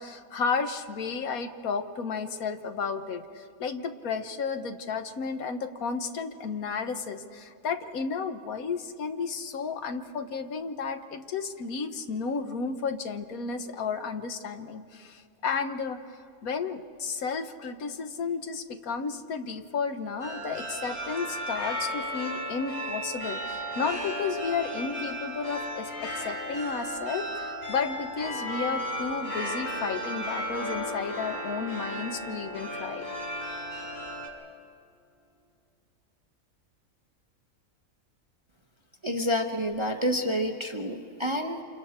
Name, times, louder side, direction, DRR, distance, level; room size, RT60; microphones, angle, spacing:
voice 1, 0.0-33.1, left 5 dB, 70° left, 8 dB, 1.4 m, -33 dB
sound 1, 20.2-34.3, equal, 40° left, 4.5 m, -34 dB
voice 2, 39.0-41.6, equal, 25° right, 4 dB, 0.8 m, -28 dB
28.5 x 27.0 x 4.4 m, 2.5 s
omnidirectional pair, 1.6 m